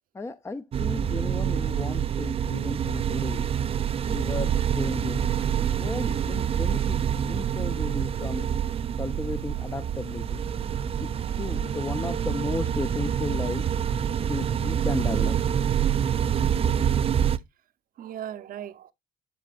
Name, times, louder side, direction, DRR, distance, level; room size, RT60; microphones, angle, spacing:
voice 1, 0.1-3.5 4.1-5.3 5.5-8.5 9.0-10.5 11.0-13.7 14.3-15.4 15.7-15.8, left 3 dB, 15° left, 0.6 m, -34 dB
sound 1, 0.7-17.4, right 9 dB, 35° right, 0.5 m, -26 dB
voice 2, 10.9-11.6 14.4-14.6 15.8-16.0 16.7-17.0 18.0-18.9, right 10 dB, 55° right, 0.8 m, -41 dB
12.0 x 4.0 x 2.4 m
cardioid pair, 110°, 17 cm